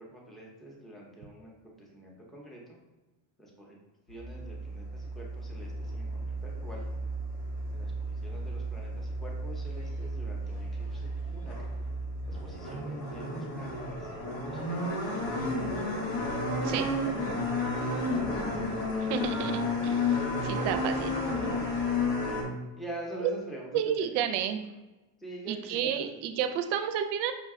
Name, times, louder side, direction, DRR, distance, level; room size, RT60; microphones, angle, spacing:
voice 1, 0.0-2.8 3.4-3.8 4.1-6.9 7.7-11.6 12.3-16.4 17.7-18.6 21.5-21.6 22.2-24.3 25.2-26.0, right 1 dB, ahead, -2 dB, 0.6 m, -46 dB
sound 1, 4.1-22.4, left 1 dB, 85° left, 1.3 m, -32 dB
voice 2, 19.0-21.1 23.7-24.6 25.5-27.3, right 9 dB, 60° right, 8 dB, 0.5 m, -31 dB
5.6 x 2.2 x 3.5 m, 1.1 s
cardioid pair, 130°, 48 cm